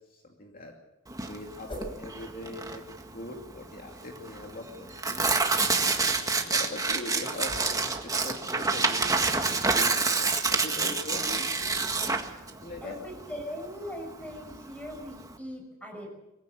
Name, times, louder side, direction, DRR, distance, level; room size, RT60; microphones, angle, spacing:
voice 1, 0.1-0.7 1.2-5.4 6.0-11.5 12.5-13.0, left 1 dB, 45° left, 1 dB, 2.6 m, -42 dB
Tearing, 1.1-15.4, right 4 dB, 15° right, 1.8 m, -28 dB
sound 1, 1.6-2.0 6.1-9.6 10.6-13.9, equal, 25° left, 7.1 m, -49 dB
voice 2, 12.8-16.1, equal, 5° left, 3 dB, 6.1 m, -40 dB
22.5 x 16.0 x 8.2 m, 0.96 s
head